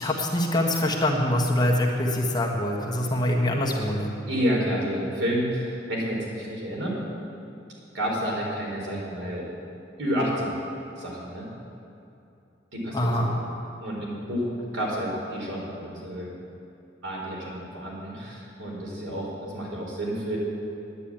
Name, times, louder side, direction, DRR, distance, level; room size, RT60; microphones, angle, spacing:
voice 1, 0.0-4.1 12.9-13.3, left 1 dB, 20° left, -1 dB, 1.3 m, -24 dB
voice 2, 4.3-6.9 7.9-9.5 10.0-10.5 11.0-11.5 12.7-13.3 13.8-16.3 17.0-20.4, equal, 80° right, -3 dB, 4.1 m, -30 dB
10.0 x 9.9 x 8.7 m, 2.7 s
head